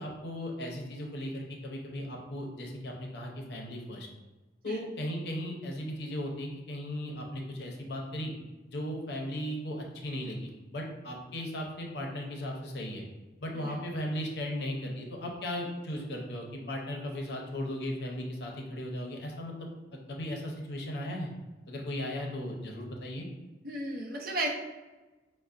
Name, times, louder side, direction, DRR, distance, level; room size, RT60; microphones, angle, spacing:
voice 1, 0.0-4.1 4.6-8.3 8.7-13.0 13.4-21.3 21.7-23.3, left 1 dB, 60° left, 0 dB, 0.6 m, -37 dB
voice 2, 23.6-24.5, right 1 dB, 55° right, 0 dB, 0.6 m, -34 dB
5.3 x 2.0 x 2.4 m, 1.2 s
head